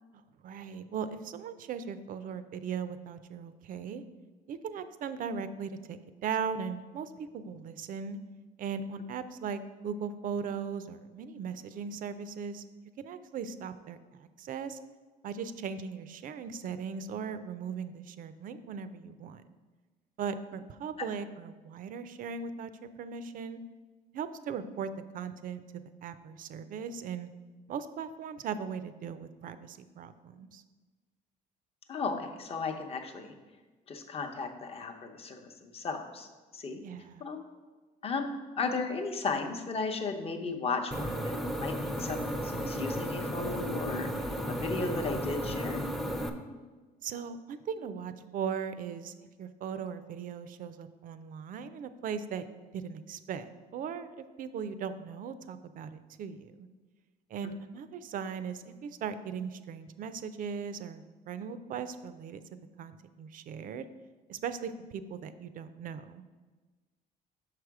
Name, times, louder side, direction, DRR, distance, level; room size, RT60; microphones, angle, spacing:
voice 1, 0.1-4.0 4.5-8.2 8.6-12.6 13.0-14.8 15.2-19.4 20.2-22.7 23.0-23.6 24.1-24.9 25.1-25.6 26.0-27.3 27.7-30.6 36.8-37.3 47.0-52.4 52.7-56.7 57.3-62.4 62.8-63.9 64.3-66.2, right 6 dB, 55° right, 12 dB, 0.4 m, -38 dB
voice 2, 31.9-33.3 33.9-36.8 37.2-37.4 38.0-38.3 38.6-45.8, left 4 dB, 35° left, 5 dB, 0.8 m, -35 dB
sound 1, 40.9-46.3, equal, ahead, 0.5 m, -34 dB
5.9 x 4.9 x 4.7 m, 1.3 s
cardioid pair, 110°, 17 cm